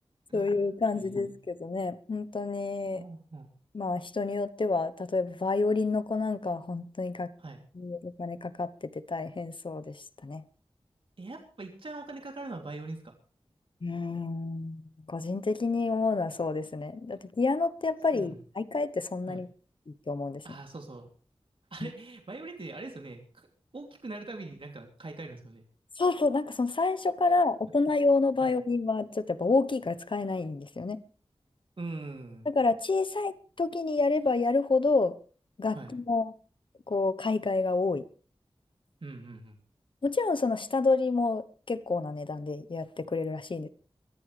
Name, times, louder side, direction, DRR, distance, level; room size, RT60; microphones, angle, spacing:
voice 1, 0.3-3.0 3.7-7.3 7.8-10.0 10.2-10.4 13.8-19.5 20.1-20.4 21.8-21.9 26.0-31.0 32.5-35.1 35.6-36.3 36.9-38.0 40.0-43.7, left 3 dB, 55° left, 1.1 m, -29 dB
voice 2, 0.9-1.4 2.9-3.5 7.4-7.6 11.2-13.1 18.1-18.4 19.3-19.4 20.4-21.1 21.7-23.5 23.7-25.6 28.4-28.5 31.8-32.5 35.7-35.9 39.0-39.6, right 2 dB, 65° right, 3.1 m, -42 dB
23.0 x 14.0 x 3.4 m
wide cardioid pair, 75°, 10 cm